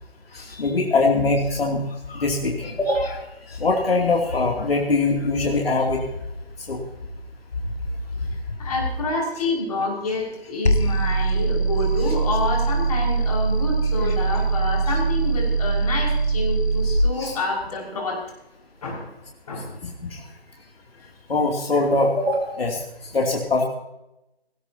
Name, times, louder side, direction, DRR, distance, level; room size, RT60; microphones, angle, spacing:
voice 1, 0.3-1.8 2.1-3.2 3.5-6.1 6.7-6.8 14.0-14.1 17.2-17.4 21.3-22.8 23.1-23.7, left 3 dB, 65° left, 1 dB, 2.8 m, -22 dB
voice 2, 8.6-18.2 18.8-19.1 19.5-19.7, left 2 dB, 35° left, -2 dB, 5.9 m, -28 dB
sound 1, 10.6-17.0, right 3 dB, 90° left, 1.9 m, -22 dB
18.5 x 18.5 x 2.8 m, 0.91 s
figure-of-eight pair, 160°, 32 cm